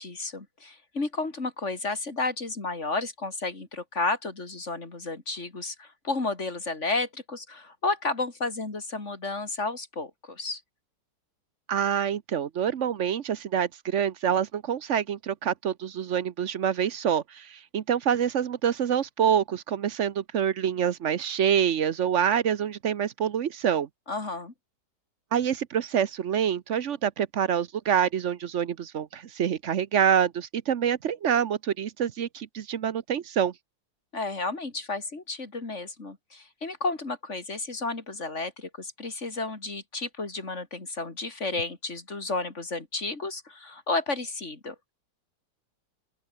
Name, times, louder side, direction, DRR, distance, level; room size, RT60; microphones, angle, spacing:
voice 1, 0.0-10.6 24.1-24.5 34.1-44.8, left 3 dB, 40° left, 3.7 m, -32 dB
voice 2, 11.7-23.9 25.3-33.5, right 8 dB, 55° right, 0.9 m, -26 dB
open air
omnidirectional pair, 2.0 m